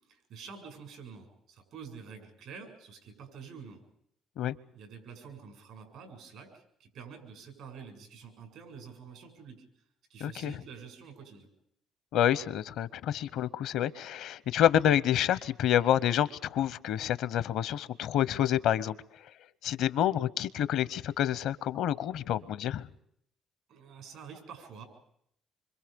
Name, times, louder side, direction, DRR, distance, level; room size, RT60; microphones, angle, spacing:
voice 1, 0.0-3.8 4.7-9.6 10.1-11.5 23.7-24.8, right 6 dB, 80° right, 7.2 m, -48 dB
voice 2, 10.2-10.5 12.1-18.9 19.6-22.9, left 11 dB, 80° left, 0.8 m, -28 dB
27.0 x 25.0 x 5.3 m
supercardioid pair, 75°, 0 cm